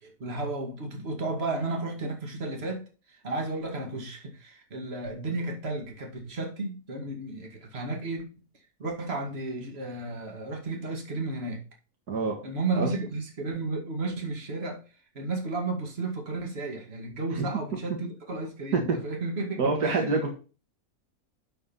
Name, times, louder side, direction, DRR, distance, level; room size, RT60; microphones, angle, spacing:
voice 1, 0.0-8.3 8.8-11.6 12.4-14.8 15.1-19.6 19.8-20.3, right 2 dB, 40° right, 2.4 m, -33 dB
voice 2, 19.6-20.3, right 4 dB, 90° right, 2.3 m, -26 dB
11.0 x 4.5 x 5.6 m
omnidirectional pair, 1.6 m